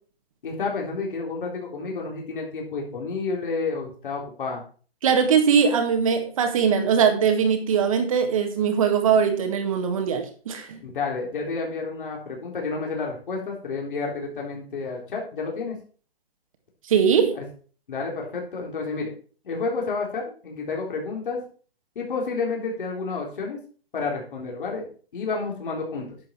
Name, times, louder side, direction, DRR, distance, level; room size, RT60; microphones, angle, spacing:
voice 1, 0.4-4.6 10.8-15.8 17.4-17.5 17.9-19.1 19.4-21.4 22.0-23.6 23.9-24.9 25.1-26.1, left 4 dB, 55° left, -1 dB, 4.0 m, -30 dB
voice 2, 5.0-10.8 16.8-17.4, right 7 dB, 35° right, 6 dB, 1.9 m, -21 dB
11.5 x 7.8 x 4.4 m, 0.40 s
hypercardioid pair, 170°, 32 cm